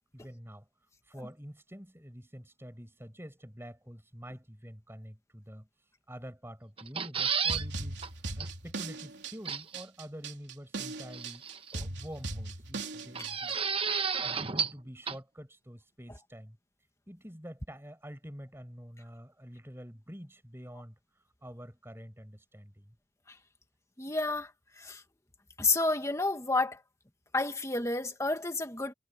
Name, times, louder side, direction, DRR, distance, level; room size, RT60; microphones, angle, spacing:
voice 1, 0.1-0.7 1.0-5.7 6.1-11.4 11.8-13.6 14.2-16.6 17.1-20.9 21.4-22.9, equal, 15° right, 6.6 m, -47 dB
sound 1, 6.8-7.6 8.0-8.1 8.4-8.5 9.4-9.8 11.1-11.7 13.1-14.8 15.1-15.2, right 6 dB, 30° right, 1.1 m, -32 dB
sound 2, 7.5-13.5, right 2 dB, 75° right, 3.5 m, -39 dB
voice 2, 24.0-24.5 24.8-25.0 25.6-26.8 27.3-28.9, left 3 dB, 15° left, 1.8 m, -30 dB
head